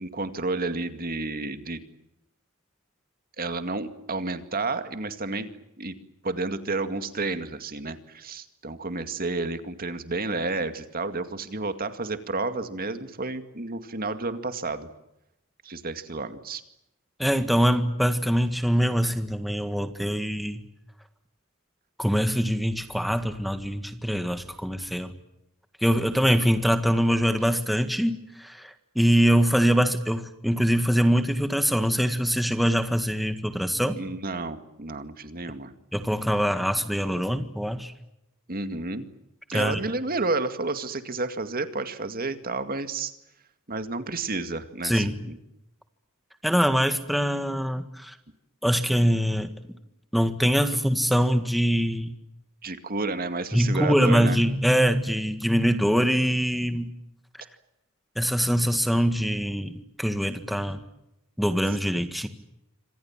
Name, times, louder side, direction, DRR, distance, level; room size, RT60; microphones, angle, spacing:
voice 1, 0.0-1.8 3.4-5.5 5.8-6.0 6.2-14.9 15.6-16.6 26.3-26.4 33.9-35.7 38.5-39.1 39.5-43.1 43.7-45.4 52.6-54.4, right 3 dB, 45° right, 9 dB, 2.2 m, -31 dB
voice 2, 17.2-20.7 22.0-25.1 25.8-34.0 35.9-37.9 39.5-39.8 44.8-45.1 46.4-48.1 48.6-49.5 50.1-52.1 53.5-56.9 58.1-60.8 61.4-62.3, equal, ahead, 8 dB, 1.7 m, -23 dB
27.5 x 26.5 x 7.4 m, 0.85 s
head